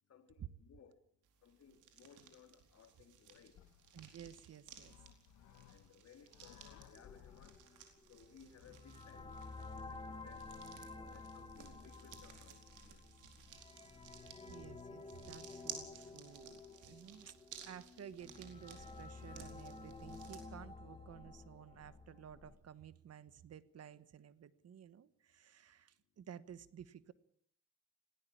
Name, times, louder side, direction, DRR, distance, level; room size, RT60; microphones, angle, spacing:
voice 1, 0.1-0.9 1.4-3.6 5.7-7.6 8.1-9.4 9.7-10.4 11.0-12.6 12.9-13.1, left 7 dB, 55° left, 3.4 m, -62 dB
sound 1, 1.2-20.4, right 8 dB, 90° right, 4.5 m, -57 dB
sound 2, 3.3-8.8, left 10 dB, 75° left, 1.3 m, -62 dB
voice 2, 3.9-4.9 13.9-14.0 14.5-27.1, right 9 dB, 55° right, 1.3 m, -54 dB
sound 3, 7.0-22.6, left 3 dB, 20° left, 3.0 m, -52 dB
19.5 x 17.0 x 8.6 m
cardioid pair, 90°, 30 cm